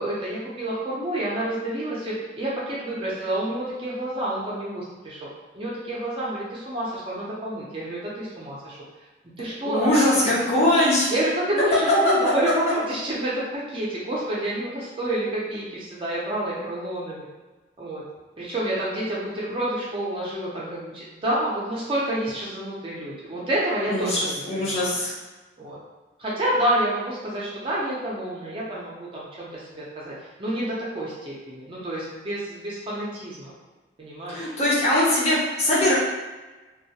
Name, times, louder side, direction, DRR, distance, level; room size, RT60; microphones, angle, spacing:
voice 1, 0.0-5.2 5.5-8.8 9.4-10.3 11.1-17.3 17.8-18.0 18.4-25.0 25.6-25.8 26.2-33.5 34.0-34.4, right 1 dB, 30° right, -6 dB, 0.4 m, -28 dB
voice 2, 9.7-11.1 23.9-25.1 34.3-35.9, left 1 dB, 35° left, -6 dB, 0.5 m, -21 dB
2.2 x 2.0 x 2.7 m, 1.2 s
head